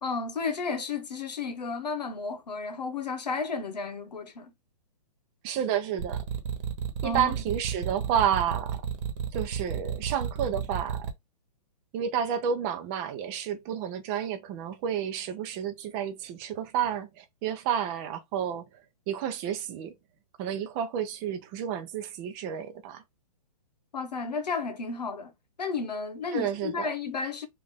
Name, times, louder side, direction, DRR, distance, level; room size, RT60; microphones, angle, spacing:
voice 1, 0.0-4.5 7.0-7.4 23.9-25.3 25.6-27.5, left 4 dB, 90° left, 1.0 m, -32 dB
voice 2, 5.4-6.2 7.0-8.8 9.3-11.1 11.9-18.7 19.1-19.9 20.4-23.0 26.3-26.9, right 9 dB, 25° right, 0.6 m, -30 dB
sound 1, 6.0-11.1, right 8 dB, 50° right, 1.1 m, -32 dB
3.5 x 2.5 x 3.6 m
hypercardioid pair, 145°, 20 cm